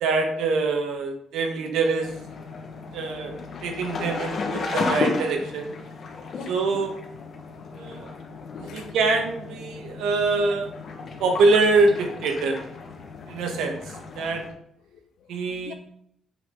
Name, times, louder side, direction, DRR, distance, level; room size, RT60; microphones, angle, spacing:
voice 1, 0.0-2.1 2.9-5.7 6.5-6.9 7.7-8.1 8.6-10.7 11.2-12.7 13.3-13.8 14.1-14.4 15.3-15.7, right 3 dB, 85° right, 1.5 m, -24 dB
sound 1, 2.0-14.5, left 4 dB, 55° left, 1.6 m, -34 dB
voice 2, 6.1-6.6 7.5-8.0 8.7-8.9 14.9-15.7, left 6 dB, 80° left, 0.8 m, -45 dB
8.7 x 5.7 x 3.9 m
cardioid pair, 90°, 0 cm